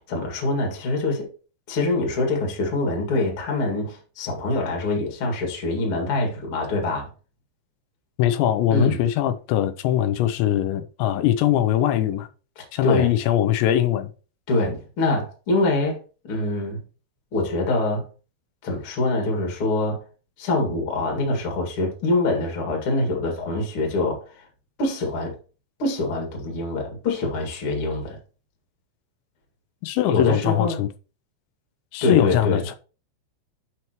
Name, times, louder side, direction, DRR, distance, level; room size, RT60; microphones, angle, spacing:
voice 1, 0.1-1.3 1.7-7.1 8.7-9.0 12.6-13.1 14.5-16.0 16.2-16.8 17.3-18.0 18.6-20.0 20.4-24.5 24.8-25.4 25.8-28.2 30.0-30.8 32.0-32.6, left 2 dB, 40° left, 2.1 m, -24 dB
voice 2, 8.2-12.3 12.7-14.1 29.8-30.9 31.9-32.8, left 11 dB, 90° left, 2.9 m, -21 dB
11.0 x 4.6 x 3.0 m
omnidirectional pair, 5.0 m